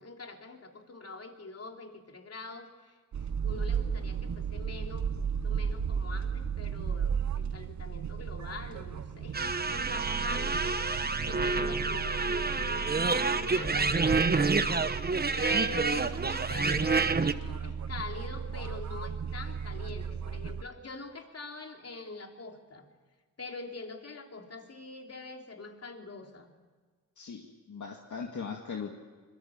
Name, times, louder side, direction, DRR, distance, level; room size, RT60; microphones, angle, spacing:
voice 1, 0.0-14.7 15.3-22.9 23.4-26.5, left 3 dB, 50° left, 3 dB, 3.2 m, -44 dB
sound 1, 3.1-20.6, right 7 dB, 60° right, 0.9 m, -35 dB
sound 2, 9.3-17.3, right 4 dB, 30° right, 1.1 m, -28 dB
voice 2, 27.2-28.9, left 5 dB, 65° left, 2 dB, 2.2 m, -39 dB
26.0 x 23.0 x 7.4 m, 1.5 s
cardioid pair, 85°, 33 cm